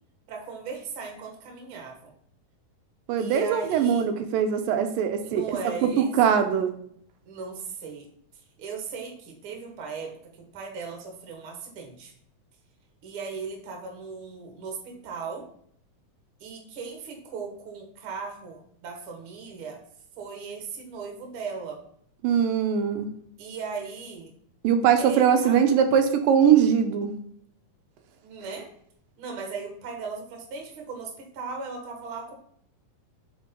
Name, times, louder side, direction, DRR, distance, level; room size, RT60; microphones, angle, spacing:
voice 1, 0.3-2.1 3.2-4.0 5.2-6.4 7.3-8.1 8.6-10.1 10.5-12.1 13.0-15.5 16.4-19.8 20.2-21.8 23.4-24.3 25.0-25.6 28.2-28.7 29.2-32.3, right 5 dB, 50° right, 2 dB, 1.8 m, -37 dB
voice 2, 3.1-6.7 22.2-23.1 24.6-27.1, right 8 dB, 85° right, 7 dB, 2.3 m, -22 dB
5.1 x 4.4 x 5.2 m, 0.65 s
omnidirectional pair, 3.9 m